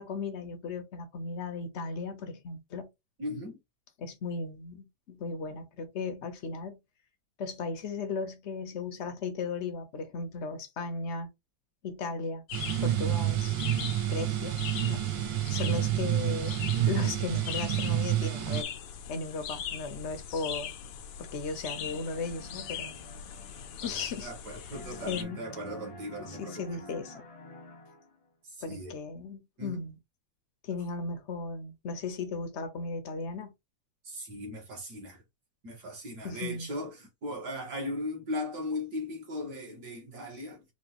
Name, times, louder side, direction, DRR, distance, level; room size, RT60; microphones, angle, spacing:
voice 1, 0.0-2.9 4.0-6.8 7.4-11.3 11.8-12.4 12.8-13.4 14.1-14.6 14.8-15.1 15.5-18.7 19.1-20.7 21.2-22.9 23.8-24.3 25.0-25.4 26.3-27.2 28.6-30.0 30.6-33.5 36.2-36.7, left 4 dB, 55° left, 0.8 m, -36 dB
voice 2, 3.2-3.6 23.8-23.9 24.2-26.8 28.4-28.9 29.6-29.8 34.0-35.2 35.6-40.6, left 1 dB, 60° right, 2.1 m, -38 dB
sound 1, 12.5-25.2, left 8 dB, 80° left, 1.3 m, -41 dB
sound 2, 12.5-18.6, right 13 dB, 80° right, 1.3 m, -29 dB
sound 3, 21.7-24.5 24.7-28.3, left 1 dB, 25° left, 0.8 m, -49 dB
4.4 x 2.7 x 2.9 m
omnidirectional pair, 2.0 m